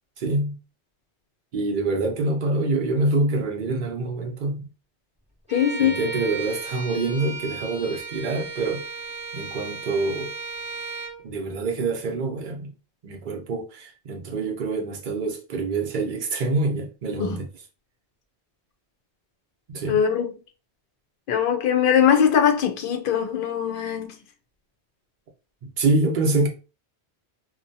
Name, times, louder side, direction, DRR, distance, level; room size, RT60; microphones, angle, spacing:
voice 1, 0.2-0.6 1.5-4.7 5.8-8.9 9.3-10.3 11.2-12.7 13.0-17.5 19.7-20.0 25.6-26.5, right 2 dB, 50° right, 0.7 m, -26 dB
voice 2, 5.5-6.0 17.2-17.4 19.9-20.3 21.3-24.2, left 8 dB, 60° left, 0.7 m, -21 dB
Bowed string instrument, 5.5-11.2, right 4 dB, 10° right, 0.6 m, -35 dB
2.7 x 2.2 x 2.6 m
omnidirectional pair, 1.1 m